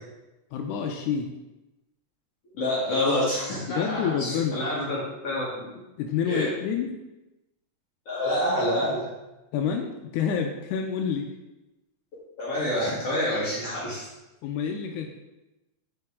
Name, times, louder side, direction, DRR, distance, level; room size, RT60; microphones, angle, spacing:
voice 1, 0.5-1.3 3.7-4.6 6.0-7.0 8.6-8.7 9.5-11.3 14.4-15.1, left 7 dB, 90° left, 3 dB, 2.1 m, -28 dB
voice 2, 2.6-5.0 5.2-5.6 6.3-6.5 8.1-9.0 12.4-14.0, left 1 dB, 55° left, -8 dB, 2.7 m, -27 dB
9.6 x 4.4 x 3.6 m, 1.0 s
omnidirectional pair, 3.5 m